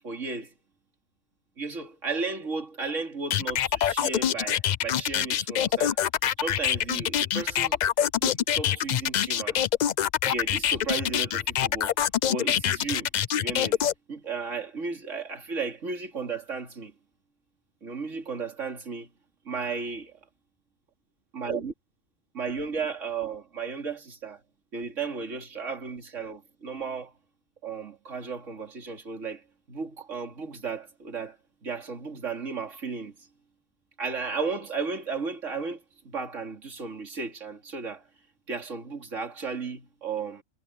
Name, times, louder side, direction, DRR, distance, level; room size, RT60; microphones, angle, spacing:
voice 1, 0.0-0.5 1.6-6.0 6.4-7.8 8.2-9.6 10.3-11.9 12.3-13.8 14.1-16.9 17.8-19.1 19.4-20.2 21.3-21.7 22.3-24.4 24.7-27.1 27.6-33.3 34.0-38.1 38.5-40.4, right 4 dB, 70° right, 3.2 m, -34 dB
sound 1, 3.3-13.9, left 10 dB, 80° left, 0.4 m, -25 dB
omnidirectional pair, 1.3 m